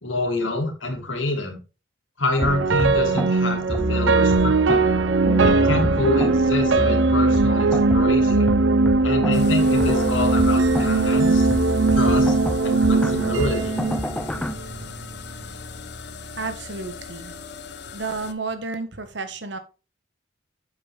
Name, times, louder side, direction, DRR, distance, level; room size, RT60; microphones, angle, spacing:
voice 1, 0.0-1.6 2.2-4.8 5.4-8.5 9.0-11.5 11.9-12.3 12.6-13.8, left 2 dB, 90° left, 3 dB, 2.7 m, -27 dB
sound 1, 2.4-14.5, left 1 dB, 5° left, 0.3 m, -28 dB
sound 2, 2.4-14.7, right 3 dB, 90° right, 0.7 m, -20 dB
sound 3, 9.3-18.3, left 4 dB, 60° left, 1.0 m, -37 dB
voice 2, 16.4-17.4 17.9-19.6, right 3 dB, 70° right, 10 dB, 1.4 m, -31 dB
9.1 x 7.3 x 3.4 m, 0.32 s
head